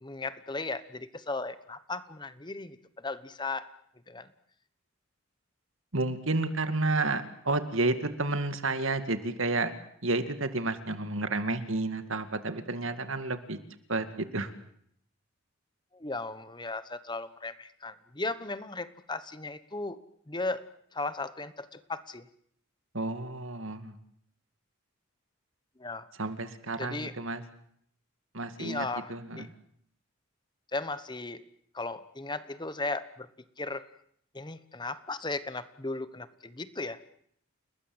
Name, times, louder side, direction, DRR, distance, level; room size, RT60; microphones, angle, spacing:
voice 1, 0.0-3.7 4.1-4.3 15.9-20.0 20.3-22.2 25.8-26.1 26.8-27.1 28.6-29.5 30.7-31.4 31.7-33.3 33.6-33.8 34.3-37.0, left 3 dB, 20° left, 13 dB, 1.1 m, -36 dB
voice 2, 5.9-9.7 10.0-13.6 13.9-14.5 22.9-23.9 26.2-27.4 28.3-29.5, right 2 dB, 65° right, 9 dB, 2.3 m, -31 dB
29.5 x 20.5 x 8.0 m, 0.68 s
head